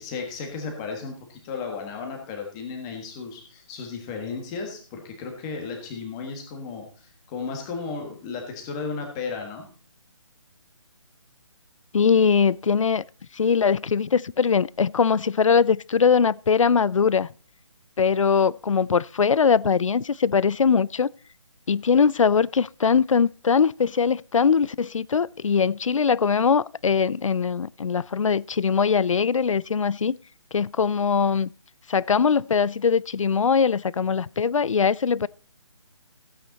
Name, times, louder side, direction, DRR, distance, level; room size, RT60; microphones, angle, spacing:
voice 1, 0.0-9.7, left 4 dB, 10° left, 1.5 m, -34 dB
voice 2, 11.9-13.0 13.3-17.3 18.0-21.1 21.7-30.2 30.5-31.5 31.9-35.3, left 6 dB, 75° left, 0.5 m, -21 dB
15.5 x 8.9 x 4.1 m
hypercardioid pair, 175°, 17 cm